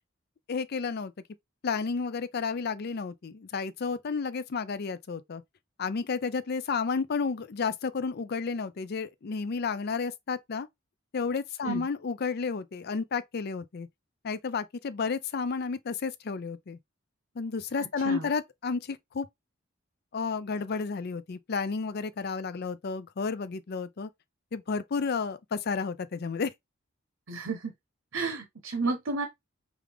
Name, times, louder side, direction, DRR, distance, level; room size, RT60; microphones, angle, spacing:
voice 1, 0.5-1.1 1.6-5.4 5.8-10.7 11.1-13.9 14.2-16.8 17.4-19.3 20.1-24.1 24.5-26.5, left 5 dB, 55° left, 0.5 m, -31 dB
voice 2, 17.8-18.2 27.3-27.7 28.1-29.3, right 3 dB, 85° right, 0.9 m, -32 dB
4.9 x 2.4 x 3.4 m
head